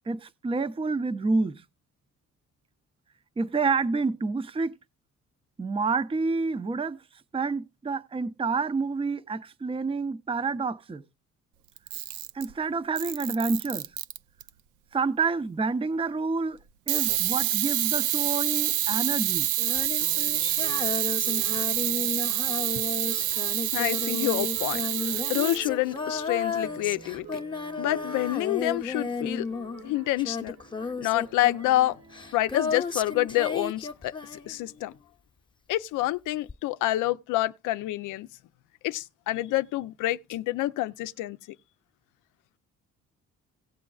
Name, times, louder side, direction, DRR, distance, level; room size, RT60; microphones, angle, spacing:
voice 1, 0.1-1.6 3.4-4.8 5.6-7.0 7.3-11.0 12.3-13.9 14.9-16.6 16.9-19.5, right 4 dB, 20° right, 0.5 m, -28 dB
Camera, 11.8-12.5 13.0-14.5 16.9-25.6, right 13 dB, 80° right, 0.5 m, -27 dB
Female singing, 19.6-34.9 36.5-36.6, left 4 dB, 15° left, 0.7 m, -34 dB
sound 1, 20.0-33.2, right 6 dB, 65° right, 1.2 m, -48 dB
voice 2, 23.7-27.4 27.8-29.4 29.8-30.6 31.0-32.0 32.3-34.9 35.7-38.3 38.8-41.6, left 16 dB, 90° left, 0.5 m, -28 dB
17.5 x 7.4 x 2.3 m
cardioid pair, 90°, 30 cm